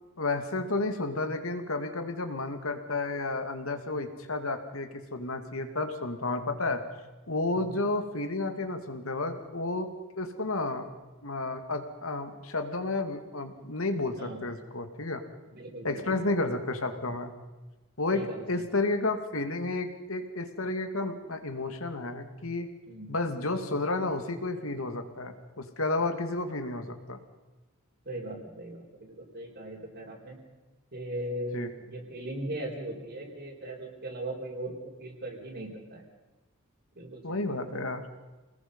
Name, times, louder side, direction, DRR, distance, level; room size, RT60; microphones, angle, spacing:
voice 1, 0.2-6.8 7.3-9.9 10.1-10.9 11.2-15.2 15.8-17.3 18.0-18.2 18.5-22.7 23.1-27.2 31.5-31.7 37.2-38.0, left 2 dB, 75° left, 7 dB, 2.5 m, -31 dB
voice 2, 14.1-14.5 15.5-16.3 18.1-18.7 22.9-23.1 28.0-30.4 30.9-36.0 36.9-37.8, right 1 dB, 50° right, -2 dB, 4.6 m, -39 dB
29.0 x 20.0 x 5.6 m, 1.1 s
head